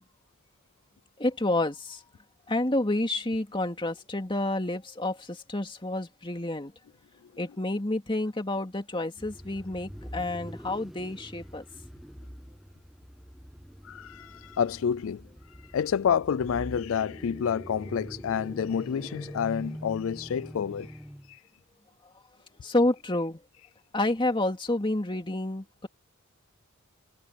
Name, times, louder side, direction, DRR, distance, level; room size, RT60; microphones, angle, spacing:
voice 1, 1.2-2.0 2.5-6.7 7.4-11.6 22.6-23.4 23.9-25.9, left 1 dB, 25° left, 2.3 m, -29 dB
sound 1, 9.2-21.3, equal, ahead, 1.1 m, -44 dB
voice 2, 13.8-15.2 15.7-21.0 21.3-21.4, left 7 dB, 70° left, 0.4 m, -29 dB
head